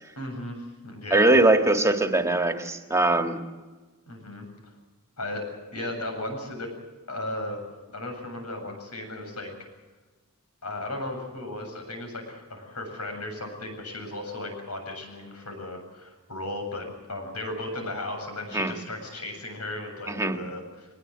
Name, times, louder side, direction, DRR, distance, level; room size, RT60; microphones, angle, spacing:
voice 1, 0.2-1.4 4.1-4.5 5.2-5.4 5.7-6.7 7.1-7.6 7.9-9.5 10.6-20.9, left 1 dB, 90° left, 4 dB, 7.9 m, -35 dB
voice 2, 1.1-3.4 18.5-18.7 20.1-20.4, right 2 dB, 15° right, 6 dB, 1.7 m, -21 dB
23.0 x 20.5 x 7.9 m, 1.2 s
head